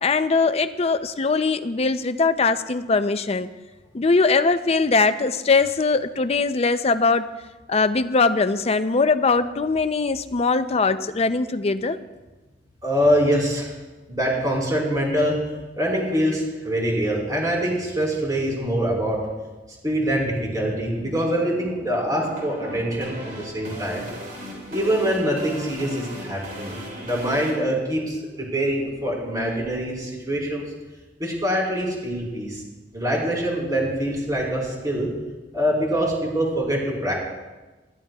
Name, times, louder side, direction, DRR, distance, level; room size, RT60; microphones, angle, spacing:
voice 1, 0.0-3.5 3.9-7.3 7.7-12.0, left 4 dB, 35° left, 11 dB, 0.5 m, -21 dB
voice 2, 12.8-13.7 14.1-15.4 15.8-19.2 19.8-24.1 24.7-30.6 31.2-32.6 32.9-35.1 35.5-37.1, equal, 20° right, -4 dB, 4.3 m, -24 dB
sound 1, 20.6-27.5, equal, 50° right, 3.7 m, -38 dB
20.0 x 13.0 x 2.3 m, 1.2 s
head